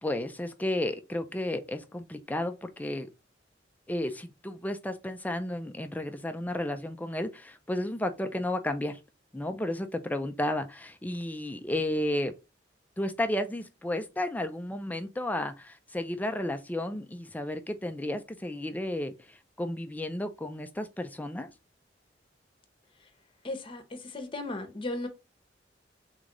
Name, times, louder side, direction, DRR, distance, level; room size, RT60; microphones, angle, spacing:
voice 1, 0.0-3.1 3.9-9.0 9.3-12.3 13.0-21.5, left 1 dB, 10° left, 0.4 m, -33 dB
voice 2, 23.4-25.1, left 2 dB, 30° left, 0.9 m, -36 dB
3.6 x 3.3 x 3.8 m
head